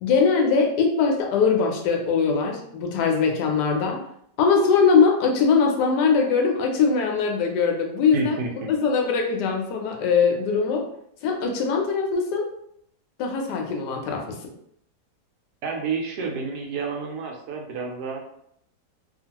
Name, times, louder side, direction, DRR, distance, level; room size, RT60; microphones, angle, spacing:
voice 1, 0.0-4.0 4.4-8.3 8.7-10.9 11.2-12.5 13.2-14.4, left 5 dB, 80° left, 2 dB, 1.2 m, -21 dB
voice 2, 8.1-8.7 15.6-18.2, right 4 dB, 75° right, 1 dB, 1.1 m, -30 dB
2.9 x 2.4 x 2.8 m, 0.71 s
omnidirectional pair, 1.8 m